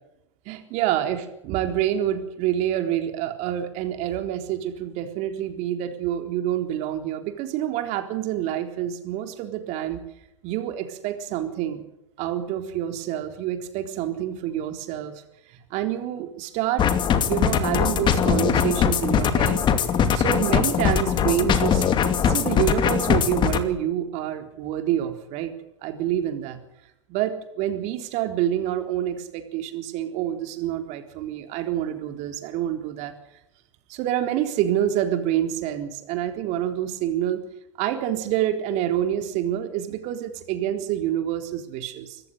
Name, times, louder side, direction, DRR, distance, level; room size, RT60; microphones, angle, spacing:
voice 1, 0.5-10.0 10.4-11.8 12.2-15.2 15.7-16.9 17.2-19.6 20.1-21.8 22.2-25.6 25.8-26.6 27.1-33.1 33.9-37.4 37.8-42.2, right 11 dB, 50° right, 7 dB, 3.9 m, -27 dB
sound 1, 16.8-23.6, left 7 dB, 30° left, 2.4 m, -21 dB
25.5 x 15.0 x 8.1 m, 0.84 s
hypercardioid pair, 100°, 15 cm